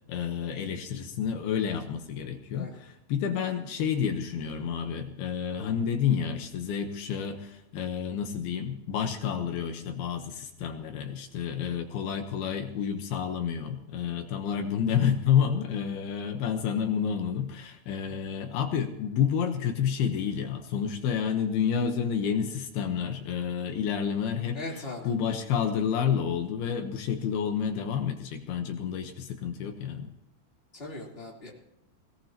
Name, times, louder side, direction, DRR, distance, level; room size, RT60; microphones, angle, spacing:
voice 1, 0.1-24.6 25.0-30.1, left 7 dB, 70° left, 5 dB, 2.7 m, -29 dB
voice 2, 24.5-25.1 30.7-31.5, left 2 dB, 15° left, -3 dB, 2.9 m, -39 dB
21.0 x 17.5 x 2.9 m, 0.82 s
omnidirectional pair, 5.0 m